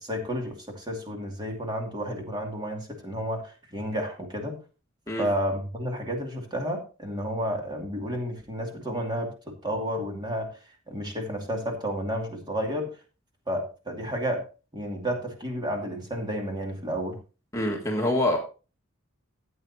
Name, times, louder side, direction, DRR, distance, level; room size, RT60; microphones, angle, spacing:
voice 1, 0.0-4.6 5.2-10.6 10.9-12.9 13.5-14.4 14.7-17.2, equal, 20° right, 1 dB, 2.5 m, -31 dB
voice 2, 17.5-18.4, left 1 dB, 15° left, 0 dB, 1.6 m, -25 dB
14.5 x 9.1 x 2.8 m, 0.33 s
head